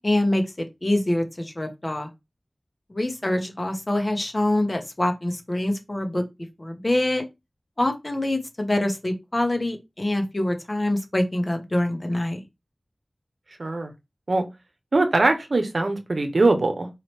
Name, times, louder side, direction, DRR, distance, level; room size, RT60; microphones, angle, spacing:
voice 1, 0.0-2.1 2.9-6.2 6.6-7.2 7.8-12.4, left 1 dB, 40° left, 1.1 m, -25 dB
voice 2, 13.6-13.9 14.3-14.4 14.9-16.9, right 2 dB, 75° right, 0.9 m, -22 dB
4.9 x 3.2 x 3.1 m
wide cardioid pair, 50°, 0 cm